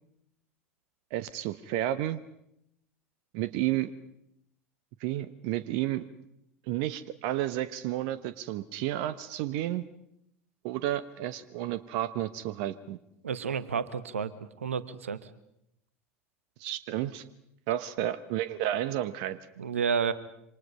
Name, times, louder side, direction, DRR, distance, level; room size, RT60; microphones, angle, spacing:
voice 1, 1.1-2.2 3.3-3.9 5.0-6.0 6.7-9.8 10.6-13.0 16.6-17.2 17.7-19.4, right 13 dB, 55° right, 14 dB, 1.0 m, -31 dB
voice 2, 13.2-14.3 14.6-15.3 19.6-20.1, right 6 dB, 80° right, 15 dB, 1.2 m, -30 dB
27.0 x 26.0 x 5.5 m, 0.78 s
figure-of-eight pair, 75°, 7 cm